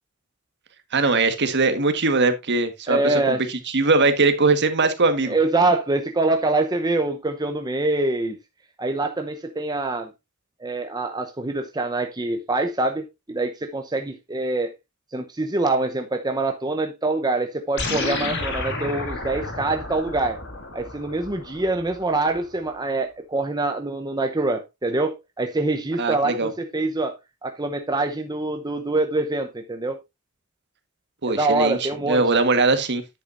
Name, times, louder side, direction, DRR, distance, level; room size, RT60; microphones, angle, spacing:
voice 1, 0.9-3.3 3.7-5.4 26.0-26.5 31.2-33.0, right 3 dB, 55° right, 1.4 m, -21 dB
voice 2, 2.9-3.4 5.3-8.4 8.8-10.1 10.6-14.7 15.1-20.4 20.7-27.2 27.4-30.0 31.3-32.2, right 2 dB, 20° right, 0.8 m, -25 dB
sound 1, 17.8-22.4, left 2 dB, 60° left, 2.4 m, -31 dB
10.0 x 8.2 x 2.6 m
head